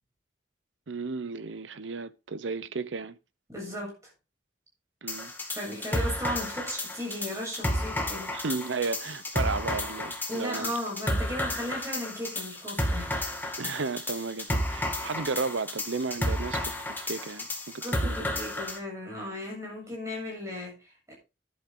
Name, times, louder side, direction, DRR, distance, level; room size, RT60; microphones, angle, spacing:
voice 1, 0.9-3.2 5.0-5.3 8.3-10.8 13.6-18.3, right 4 dB, 80° right, 0.8 m, -34 dB
voice 2, 3.5-3.9 5.5-8.3 10.3-13.2 17.8-21.1, left 1 dB, 15° right, 7.5 m, -36 dB
sound 1, 5.1-18.8, left 1 dB, 10° left, 2.1 m, -32 dB
11.5 x 10.5 x 3.8 m
head